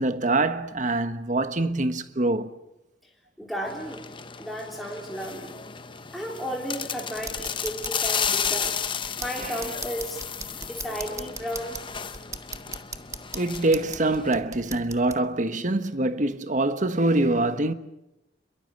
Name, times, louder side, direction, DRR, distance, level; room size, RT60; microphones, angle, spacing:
voice 1, 0.0-2.5 9.4-9.6 13.3-17.7, right 2 dB, 45° right, 1.3 m, -24 dB
voice 2, 3.4-4.0 4.4-5.5 6.1-8.8 9.2-10.2 10.6-11.8, equal, ahead, 3.6 m, -33 dB
sound 1, 3.7-14.4, left 7 dB, 30° left, 1.1 m, -33 dB
sound 2, 7.2-15.2, right 4 dB, 20° right, 1.2 m, -40 dB
27.5 x 22.5 x 7.8 m
head